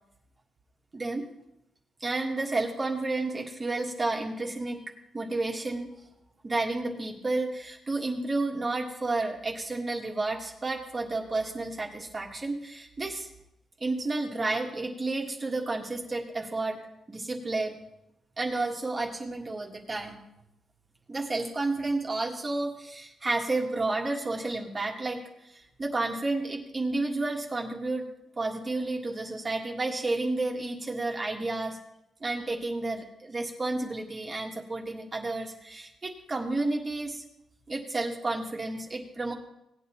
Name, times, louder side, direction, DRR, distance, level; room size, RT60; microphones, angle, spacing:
voice 1, 0.9-1.2 2.0-4.8 5.1-5.9 6.4-13.3 13.8-16.8 17.1-17.7 18.4-20.2 21.1-28.0 28.4-31.8 32.2-37.2 37.7-39.3, right 2 dB, 25° right, 0 dB, 1.6 m, -31 dB
18.0 x 9.3 x 3.0 m, 0.84 s
cardioid pair, 120°, 0 cm